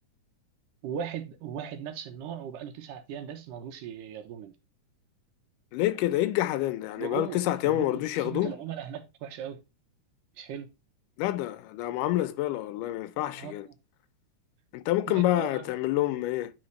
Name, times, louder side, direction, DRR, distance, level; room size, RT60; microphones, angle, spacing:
voice 1, 0.8-4.6 7.0-9.6 10.4-10.7 13.4-13.7 15.1-15.7, right 8 dB, 85° right, 2.7 m, -38 dB
voice 2, 5.7-8.5 11.2-13.7 14.7-16.5, left 15 dB, 90° left, 2.2 m, -27 dB
11.0 x 3.8 x 3.2 m
omnidirectional pair, 3.6 m